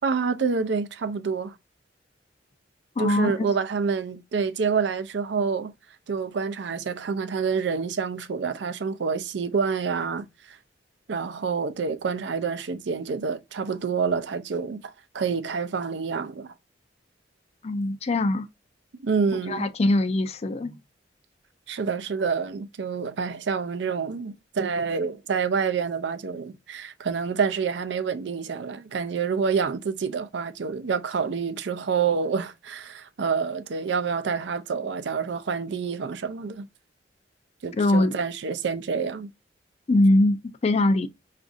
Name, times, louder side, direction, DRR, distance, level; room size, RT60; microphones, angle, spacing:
voice 1, 0.0-1.5 3.0-5.7 6.1-10.6 11.1-16.5 19.0-19.7 21.7-36.7 37.6-39.3, right 5 dB, 70° right, 0.5 m, -27 dB
voice 2, 3.0-3.5 17.6-18.5 19.3-20.8 37.7-38.2 39.9-41.1, left 2 dB, 35° left, 0.4 m, -22 dB
5.9 x 2.5 x 2.6 m
head